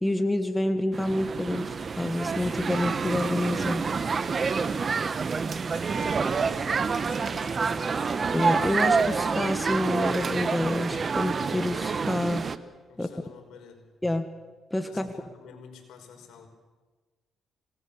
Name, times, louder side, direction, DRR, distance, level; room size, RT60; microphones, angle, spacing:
voice 1, 0.0-3.8 8.3-12.4 13.0-13.1 14.0-14.3 14.7-15.1, left 1 dB, 10° left, 7 dB, 1.8 m, -28 dB
sound 1, 0.9-12.6, right 5 dB, 40° right, 1.2 m, -27 dB
voice 2, 4.6-5.0 5.6-8.1 12.9-13.9 14.9-16.5, left 5 dB, 80° left, 4 dB, 5.2 m, -49 dB
26.5 x 20.0 x 7.2 m, 1.3 s
cardioid pair, 90°, 0 cm